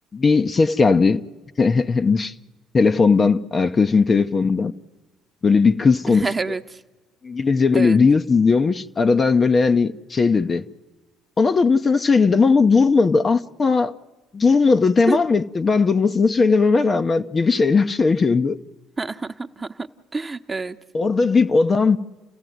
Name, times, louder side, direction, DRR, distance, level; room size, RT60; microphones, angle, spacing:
voice 1, 0.1-1.2 1.6-2.3 2.7-4.7 5.4-6.3 7.2-10.6 11.4-13.9 14.3-18.6 20.9-22.0, left 4 dB, 35° left, 0.8 m, -18 dB
voice 2, 6.1-6.6 7.7-8.0 15.1-15.2 19.0-19.3 19.6-19.9 20.1-20.8, right 3 dB, 20° right, 1.1 m, -26 dB
29.5 x 15.5 x 9.4 m
hypercardioid pair, 60°, 0 cm